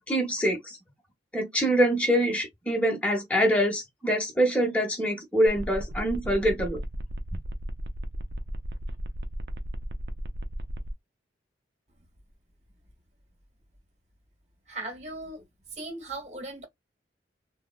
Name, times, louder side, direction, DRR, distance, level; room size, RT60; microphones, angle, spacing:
voice 1, 0.1-0.8 1.3-6.8, equal, 5° left, 0.9 m, -25 dB
sound 1, 5.5-10.9, equal, 60° right, 0.4 m, -36 dB
voice 2, 14.7-15.4 15.7-16.7, right 2 dB, 35° right, 1.2 m, -38 dB
3.4 x 2.0 x 2.2 m
head